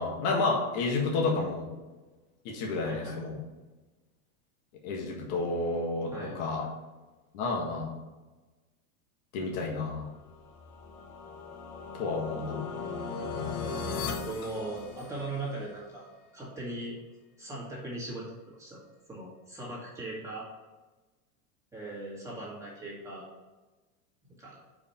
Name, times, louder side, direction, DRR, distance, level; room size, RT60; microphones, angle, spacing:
voice 1, 0.0-1.7 2.5-3.4 4.8-6.6 7.3-7.9 9.3-10.1 11.9-12.6, left 3 dB, 55° left, -1 dB, 1.7 m, -30 dB
voice 2, 2.8-3.2 6.1-6.5 12.5-12.7 14.2-16.9 17.4-18.8 19.1-20.5 21.7-23.3 24.4-24.6, right 2 dB, 5° right, -6 dB, 2.0 m, -39 dB
sound 1, 10.3-15.5, left 4 dB, 85° left, 1.2 m, -37 dB
5.0 x 4.8 x 5.7 m, 1.2 s
supercardioid pair, 145°, 42 cm